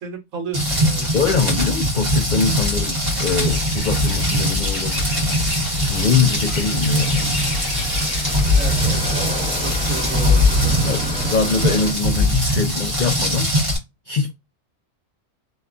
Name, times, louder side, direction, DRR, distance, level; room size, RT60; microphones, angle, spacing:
voice 1, 0.0-1.1 8.5-11.1, right 5 dB, 80° right, 1.3 m, -33 dB
Rain, 0.5-13.8, left 1 dB, 35° right, 1.1 m, -21 dB
voice 2, 1.1-5.1 5.8-7.5 10.8-13.5 14.1-14.3, left 5 dB, 80° left, 0.4 m, -23 dB
sound 1, 2.4-11.9, left 1 dB, 5° left, 1.1 m, -33 dB
sound 2, 3.0-8.9, left 2 dB, 40° left, 0.9 m, -34 dB
2.8 x 2.3 x 2.3 m
omnidirectional pair, 1.4 m